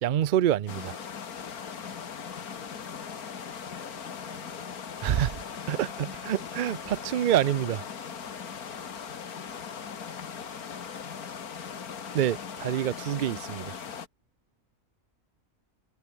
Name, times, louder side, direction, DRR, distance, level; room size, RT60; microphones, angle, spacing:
voice 1, 0.0-1.0 5.0-5.4 5.7-7.9 12.1-13.8, right 11 dB, 85° right, 0.4 m, -27 dB
sound 1, 0.7-14.1, left 7 dB, 90° left, 2.1 m, -39 dB
voice 2, 3.4-4.9, right 2 dB, 60° right, 6.0 m, -61 dB
omnidirectional pair, 1.5 m